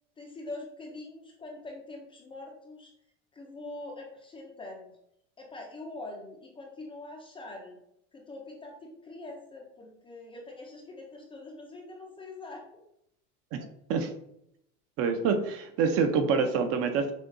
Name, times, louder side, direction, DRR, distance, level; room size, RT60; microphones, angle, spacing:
voice 1, 0.2-2.9 3.3-4.9 5.4-7.8 8.1-12.6, left 2 dB, 15° left, 0 dB, 0.4 m, -43 dB
voice 2, 13.5-14.1 15.0-17.1, right 5 dB, 40° right, 6 dB, 0.5 m, -27 dB
6.5 x 2.2 x 2.5 m, 0.76 s
supercardioid pair, 150°, 35 cm